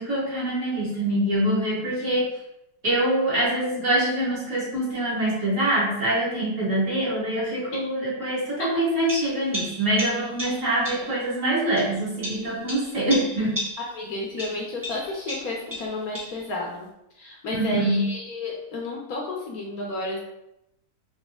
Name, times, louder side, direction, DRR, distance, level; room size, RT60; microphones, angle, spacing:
voice 1, 0.0-2.3 2.8-13.6 17.5-18.1, right 1 dB, 45° right, -8 dB, 2.1 m, -24 dB
sound 1, 9.1-11.2 11.8-14.1 14.4-16.5, equal, 20° right, 0.5 m, -35 dB
voice 2, 13.9-16.9 17.2-20.2, left 2 dB, 65° left, -2 dB, 1.1 m, -32 dB
4.1 x 3.0 x 3.5 m, 0.85 s
omnidirectional pair, 1.9 m